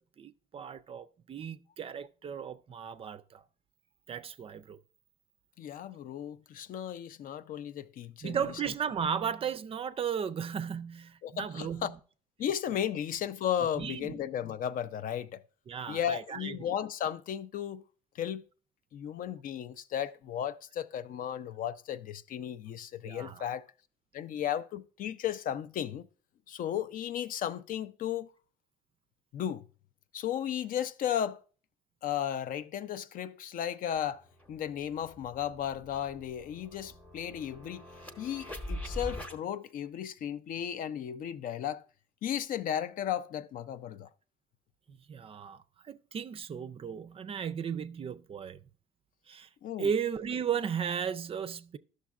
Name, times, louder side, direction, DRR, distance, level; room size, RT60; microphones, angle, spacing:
voice 1, 0.2-3.4 4.1-4.8 8.2-12.0 13.8-14.2 15.7-16.6 23.0-23.5 44.9-48.6 49.3-49.5 49.8-51.8, right 7 dB, 35° right, 0.4 m, -35 dB
voice 2, 5.6-8.4 11.2-11.9 12.4-15.4 15.9-17.8 18.1-18.4 18.9-23.6 24.1-26.1 26.5-28.3 29.3-29.6 30.1-31.4 32.0-37.9 38.2-41.8 42.2-44.1 49.6-49.9, left 10 dB, 55° left, 0.4 m, -35 dB
sound 1, 34.4-39.4, equal, 10° left, 0.8 m, -43 dB
11.5 x 6.3 x 2.4 m
cardioid pair, 110°, 17 cm